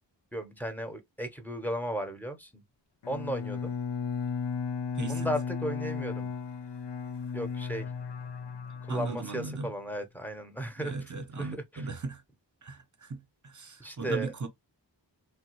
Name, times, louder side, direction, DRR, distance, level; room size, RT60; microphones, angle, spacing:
voice 1, 0.3-2.6 3.1-3.7 5.1-6.3 7.3-7.9 8.8-11.1 11.4-11.9 13.8-14.3, equal, 5° left, 0.8 m, -35 dB
Bowed string instrument, 3.0-9.6, left 6 dB, 70° left, 0.6 m, -35 dB
voice 2, 4.9-5.3 8.9-9.7 10.8-12.2 12.6-14.5, right 4 dB, 45° right, 0.7 m, -37 dB
3.3 x 2.3 x 2.9 m
wide cardioid pair, 45°, 44 cm